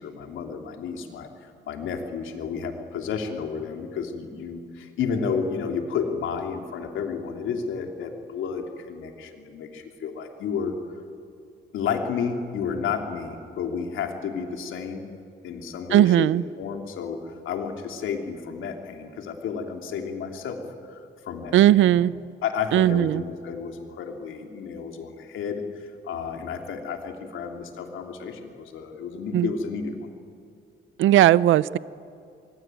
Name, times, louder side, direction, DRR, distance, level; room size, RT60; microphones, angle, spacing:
voice 1, 0.0-10.8 11.7-15.0 15.4-16.3 16.6-21.5 22.4-29.9, left 6 dB, 80° left, 4 dB, 3.3 m, -31 dB
voice 2, 15.9-16.4 21.5-22.1 22.7-23.2 29.3-29.5 31.0-31.8, right 13 dB, 80° right, 19 dB, 0.6 m, -17 dB
26.0 x 22.5 x 9.2 m, 2.4 s
cardioid pair, 90°, 20 cm